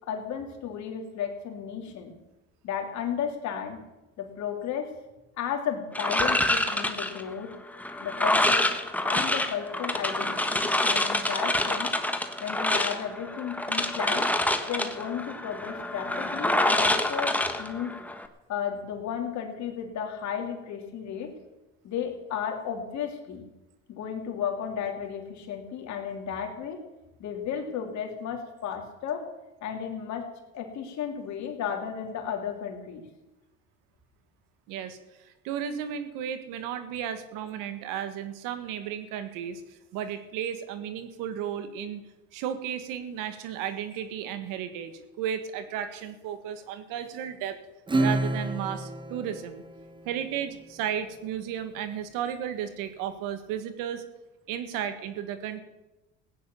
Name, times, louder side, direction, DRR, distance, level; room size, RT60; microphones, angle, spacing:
voice 1, 0.0-2.1 2.6-3.8 4.2-5.0 5.4-7.5 8.0-8.7 9.0-11.9 12.4-14.3 14.7-17.9 18.5-21.3 21.8-23.5 23.9-26.8 27.2-29.3 29.6-33.0, left 8 dB, 60° left, 3 dB, 3.1 m, -34 dB
sound 1, 5.9-18.3, left 1 dB, 5° left, 1.3 m, -27 dB
voice 2, 34.7-35.0 35.2-39.6 39.9-42.0 42.3-47.6 48.0-49.6 50.0-54.0 54.5-55.6, right 9 dB, 75° right, 10 dB, 1.8 m, -34 dB
Acoustic guitar / Strum, 47.9-50.8, right 2 dB, 15° right, 1.1 m, -30 dB
16.0 x 9.6 x 7.1 m, 1.0 s
supercardioid pair, 100°, 33 cm